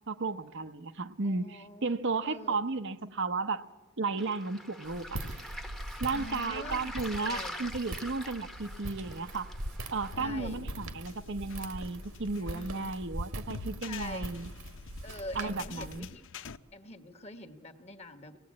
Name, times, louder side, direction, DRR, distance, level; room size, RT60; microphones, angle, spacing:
voice 1, 0.1-3.6 4.0-5.2 6.0-9.5 9.9-14.5 15.3-16.1, right 3 dB, 55° right, 9 dB, 0.8 m, -34 dB
voice 2, 1.2-2.0 2.2-2.6 6.1-7.6 10.2-10.6 12.5-12.9 13.8-14.4 15.0-16.2 16.7-18.4, left 2 dB, 30° left, 8 dB, 1.5 m, -45 dB
Waves surf, 4.2-10.2, equal, ahead, 1.1 m, -44 dB
Walk footsteps, 4.8-16.0, right 1 dB, 80° right, 1.7 m, -42 dB
sound 1, 10.1-16.6, left 4 dB, 60° left, 0.7 m, -47 dB
25.5 x 18.0 x 8.6 m, 1.2 s
head